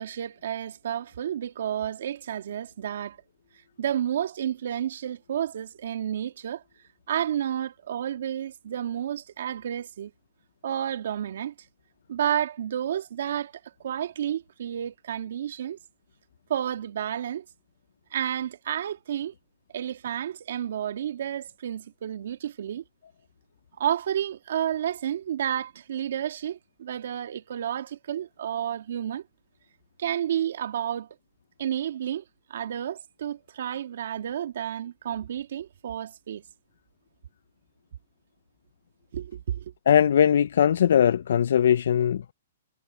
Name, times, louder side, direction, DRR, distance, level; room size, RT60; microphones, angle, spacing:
voice 1, 0.0-3.2 3.8-6.6 7.1-10.1 10.6-11.5 12.1-15.8 16.5-17.4 18.1-19.3 19.7-22.8 23.8-29.2 30.0-31.1 31.6-32.2 32.5-36.4 39.1-39.7, right 10 dB, 70° right, 2.0 m, -31 dB
voice 2, 39.9-42.2, left 9 dB, 70° left, 0.4 m, -20 dB
hypercardioid pair, 155°, 0 cm